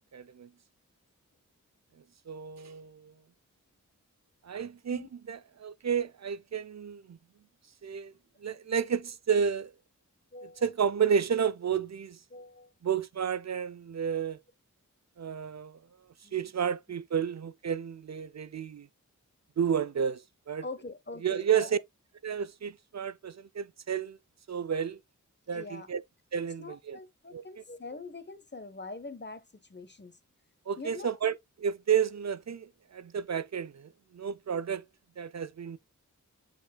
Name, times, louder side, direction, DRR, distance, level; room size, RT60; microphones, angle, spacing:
voice 1, 0.1-0.5 2.3-3.1 4.4-7.2 7.8-8.1 8.4-9.7 10.6-12.2 12.8-14.4 15.2-15.8 16.3-18.9 19.6-20.7 21.2-21.7 22.2-24.2 24.5-25.0 25.5-26.0 26.3-27.0 27.3-27.4 30.7-34.8 35.2-35.8, right 7 dB, 60° right, 0.5 m, -31 dB
voice 2, 10.3-10.6 12.3-12.7 14.1-14.2 16.2-16.5 20.6-21.7 25.5-25.9 26.6-30.2 30.8-31.2, left 3 dB, 35° left, 1.0 m, -44 dB
7.4 x 6.2 x 2.2 m
wide cardioid pair, 55°, 32 cm